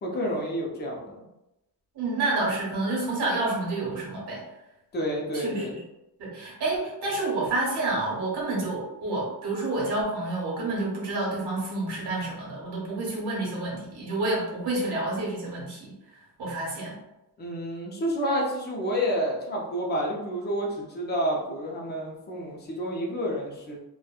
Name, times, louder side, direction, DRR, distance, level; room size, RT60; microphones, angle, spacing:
voice 1, 0.0-1.2 4.9-5.8 17.4-23.8, equal, 25° left, -2 dB, 0.5 m, -29 dB
voice 2, 1.9-4.4 5.3-5.7 6.2-15.9 16.4-16.9, right 2 dB, 70° right, -4 dB, 1.1 m, -29 dB
2.8 x 2.2 x 2.3 m, 0.93 s
wide cardioid pair, 175°, 40 cm